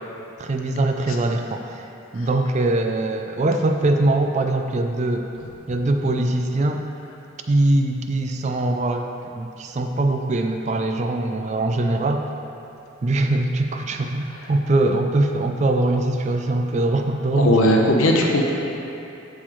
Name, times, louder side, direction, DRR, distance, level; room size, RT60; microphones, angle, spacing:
voice 1, 0.4-1.9 2.1-5.3 5.7-6.9 7.5-12.3 13.0-17.9, right 2 dB, 35° right, 4 dB, 0.3 m, -22 dB
voice 2, 17.3-18.5, left 1 dB, 80° left, 0 dB, 0.8 m, -18 dB
7.4 x 6.5 x 3.1 m, 2.8 s
head